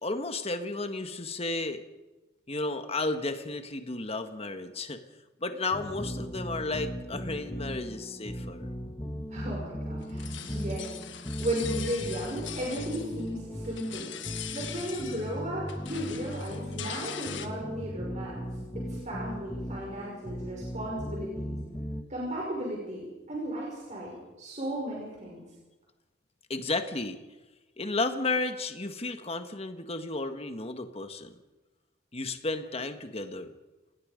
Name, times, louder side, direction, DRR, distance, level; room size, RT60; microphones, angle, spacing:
voice 1, 0.0-1.8 2.5-5.0 5.4-8.7 26.5-27.2 27.8-31.4 32.1-33.5, left 3 dB, 35° left, 7 dB, 1.7 m, -33 dB
sound 1, 5.7-22.0, equal, 15° left, 1.7 m, -38 dB
voice 2, 9.3-14.1 14.5-18.5 18.8-21.5 22.1-25.4, right 1 dB, 40° right, -4 dB, 5.9 m, -35 dB
sound 2, 10.0-13.4 13.6-15.4 15.7-17.5, left 9 dB, 75° left, 1.6 m, -41 dB
29.0 x 18.5 x 5.3 m, 1.1 s
head